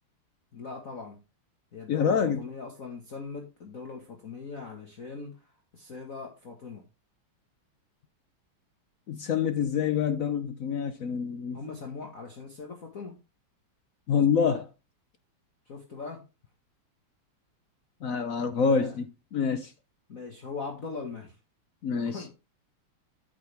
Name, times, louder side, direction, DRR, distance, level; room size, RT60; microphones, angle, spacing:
voice 1, 0.5-1.2 1.7-6.9 11.5-13.2 15.7-16.2 18.6-19.0 20.1-21.3 21.9-22.3, left 4 dB, 40° left, 1.9 m, -40 dB
voice 2, 1.9-2.4 9.1-11.6 14.1-14.7 18.0-19.7 21.8-22.2, left 6 dB, 70° left, 0.8 m, -26 dB
8.8 x 8.5 x 3.4 m
omnidirectional pair, 2.4 m